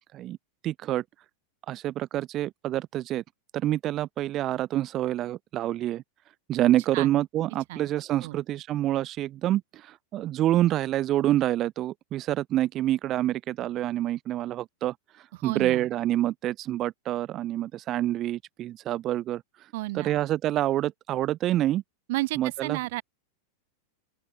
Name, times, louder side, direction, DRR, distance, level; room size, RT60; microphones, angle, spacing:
voice 1, 0.6-1.0 1.7-3.2 3.5-6.0 6.5-14.9 15.4-19.4 19.9-21.8 22.4-22.8, right 13 dB, 35° right, 6.2 m, -27 dB
voice 2, 15.3-15.9 19.7-20.2 22.1-23.0, right 20 dB, 65° right, 4.4 m, -32 dB
open air
hypercardioid pair, 120°, 0 cm